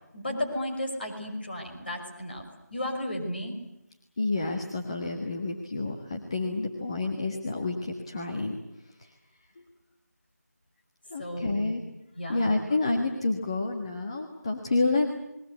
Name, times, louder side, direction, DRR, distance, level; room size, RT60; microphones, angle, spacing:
voice 1, 0.1-2.4 2.7-3.6 11.2-11.7 12.2-12.6, left 1 dB, 35° left, 3 dB, 6.0 m, -33 dB
voice 2, 4.2-9.1 9.6-9.7 11.1-11.8 12.3-15.1, left 3 dB, 20° left, 3 dB, 1.5 m, -29 dB
29.5 x 21.5 x 8.2 m, 0.88 s
figure-of-eight pair, 170°, 9 cm